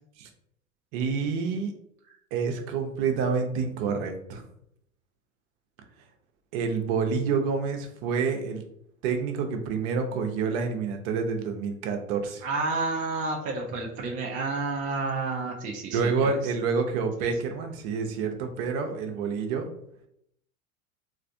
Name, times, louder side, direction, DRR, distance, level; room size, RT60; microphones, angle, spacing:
voice 1, 0.9-1.7 2.3-4.5 6.5-8.6 9.0-12.4 15.9-19.7, right 5 dB, 50° right, 5 dB, 0.7 m, -28 dB
voice 2, 12.4-16.3 17.2-17.3, right 3 dB, 20° right, 1 dB, 0.3 m, -30 dB
3.3 x 2.6 x 2.5 m, 0.73 s
figure-of-eight pair, 85°, 42 cm